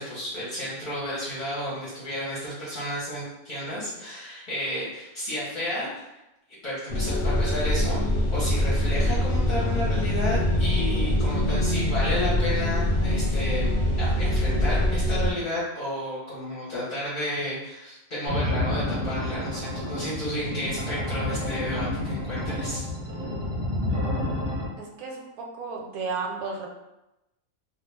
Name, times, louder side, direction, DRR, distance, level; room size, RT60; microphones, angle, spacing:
voice 1, 0.0-6.1 6.6-8.0 8.3-13.7 14.0-22.8, equal, 45° left, -9 dB, 0.7 m, -32 dB
sound 1, 6.9-15.3, left 1 dB, 80° left, 0.5 m, -24 dB
sound 2, 18.3-24.7, left 1 dB, 55° right, 0.8 m, -29 dB
voice 2, 24.8-26.7, right 4 dB, 80° right, 1 dB, 1.0 m, -33 dB
2.3 x 2.2 x 3.1 m, 0.93 s
omnidirectional pair, 1.5 m